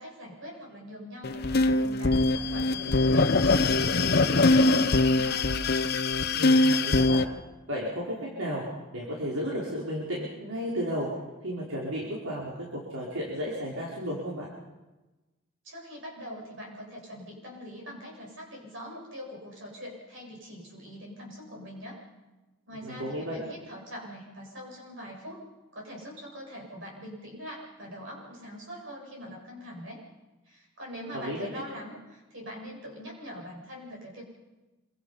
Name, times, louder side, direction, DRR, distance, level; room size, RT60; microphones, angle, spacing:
voice 1, 0.0-5.6 15.6-22.0 22.7-25.4 25.7-30.0 30.4-34.2, equal, 65° right, -1 dB, 8.0 m, -43 dB
sound 1, 1.2-7.2, left 2 dB, 50° left, 0.8 m, -23 dB
voice 2, 6.3-7.2 7.7-8.6 8.9-11.1 11.4-14.5 22.8-23.4 31.1-31.4, equal, 85° right, -5 dB, 4.7 m, -33 dB
26.5 x 24.5 x 5.7 m, 1.1 s
head